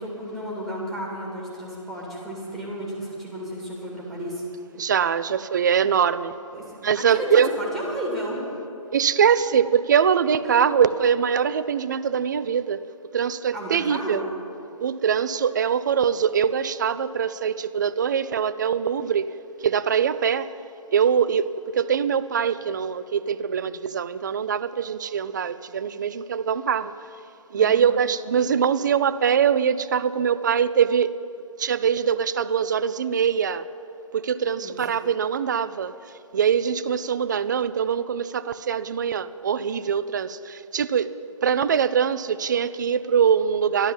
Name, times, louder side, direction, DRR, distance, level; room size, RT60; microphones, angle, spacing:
voice 1, 0.0-4.4 6.5-6.6 6.9-8.5 10.5-10.6 13.5-14.2 27.5-27.8 34.6-34.8, equal, ahead, 2.5 m, -33 dB
voice 2, 4.8-6.4 6.8-7.5 8.9-12.8 13.1-14.2 14.8-19.3 19.6-20.5 20.9-26.9 27.5-31.1 31.6-33.7 34.1-35.9 36.3-41.1 41.4-43.9, right 7 dB, 35° right, 0.4 m, -23 dB
12.0 x 12.0 x 7.2 m
figure-of-eight pair, 145°, 18 cm